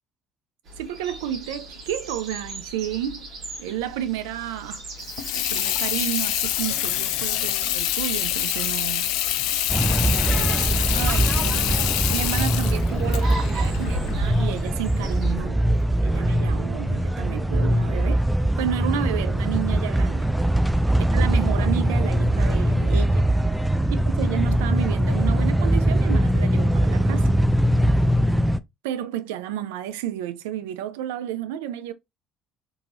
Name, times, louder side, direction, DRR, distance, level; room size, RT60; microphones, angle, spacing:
sound 1, 0.6-15.3, right 1 dB, 65° right, 1.5 m, -38 dB
voice 1, 0.8-3.3 3.6-4.8 5.3-9.1 10.0-15.6 16.0-18.2 18.6-20.3 21.0-23.3 23.9-27.3 28.8-31.9, right 11 dB, 85° right, 0.3 m, -31 dB
Water tap faucet / Sink (filling or washing), 5.0-14.6, left 13 dB, 80° left, 0.4 m, -26 dB
sound 2, 9.7-28.6, right 1 dB, 5° right, 0.3 m, -22 dB
2.9 x 2.7 x 2.5 m
supercardioid pair, 70°, 0 cm